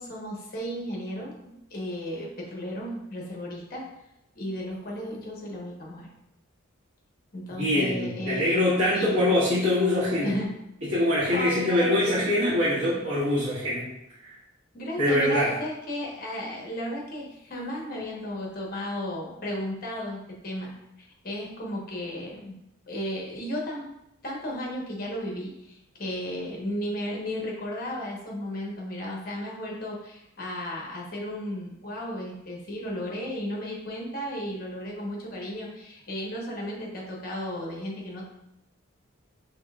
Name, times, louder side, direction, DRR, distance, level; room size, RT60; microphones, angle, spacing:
voice 1, 0.0-3.9 4.3-6.1 7.3-9.2 10.2-10.5 11.3-12.3 12.8-13.0 14.7-20.7 21.0-22.5 22.9-23.9 24.2-38.3, equal, 45° left, -2 dB, 1.0 m, -34 dB
voice 2, 7.5-10.3 10.9-13.9 14.2-14.3 15.0-15.5, left 1 dB, 85° right, -11 dB, 1.4 m, -24 dB
5.2 x 3.5 x 2.3 m, 0.87 s
head